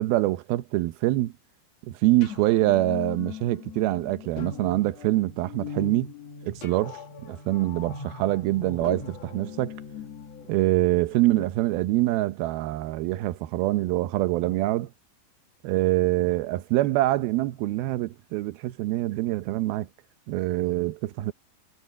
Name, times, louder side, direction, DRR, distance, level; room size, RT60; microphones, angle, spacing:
voice 1, 0.0-1.3 1.9-6.1 6.4-9.7 10.5-14.9 15.6-19.9 20.3-21.3, right 17 dB, 80° right, 2.7 m, -25 dB
sound 1, 2.1-11.5, left 6 dB, 50° left, 2.4 m, -40 dB
omnidirectional pair, 4.3 m